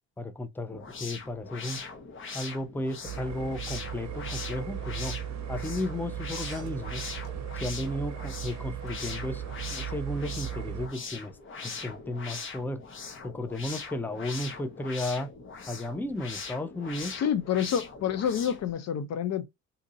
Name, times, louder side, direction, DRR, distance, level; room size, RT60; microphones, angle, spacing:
voice 1, 0.2-1.8 2.3-5.1 5.5-7.0 7.6-9.4 9.7-11.4 11.6-12.8 13.2-15.3 15.7-17.1, left 1 dB, 5° left, 0.5 m, -34 dB
sound 1, 0.7-18.7, left 4 dB, 40° left, 0.9 m, -41 dB
sound 2, 3.0-10.9, right 10 dB, 65° right, 0.6 m, -37 dB
sound 3, 6.3-7.9 8.3-9.0 10.5-10.7, right 5 dB, 35° right, 1.1 m, -51 dB
voice 2, 17.1-19.4, left 8 dB, 60° left, 0.5 m, -28 dB
2.8 x 2.6 x 3.8 m
cardioid pair, 90°, 30 cm